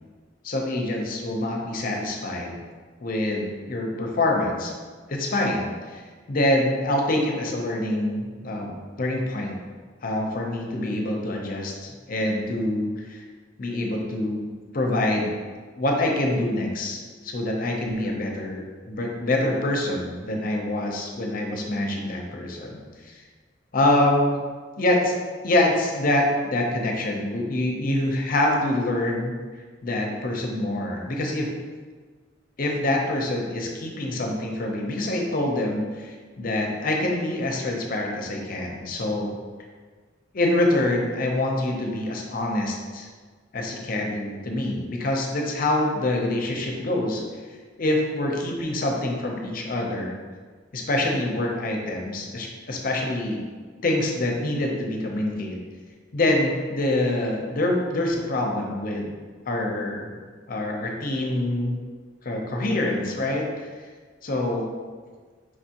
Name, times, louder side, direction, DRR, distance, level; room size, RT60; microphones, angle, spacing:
voice 1, 0.4-2.6 3.0-4.7 5.1-6.0 6.3-9.6 10.0-13.2 13.6-14.5 14.7-15.3 15.8-23.2 23.7-24.4 24.8-25.2 25.4-29.3 29.8-31.5 32.6-39.3 40.3-43.1 43.5-47.2 47.8-50.2 50.7-53.4 53.8-55.6 56.1-59.1 59.5-60.1 60.5-61.7 62.2-63.5 64.2-64.6, left 1 dB, 50° left, 1 dB, 0.7 m, -25 dB
4.8 x 3.5 x 2.8 m, 1.5 s
head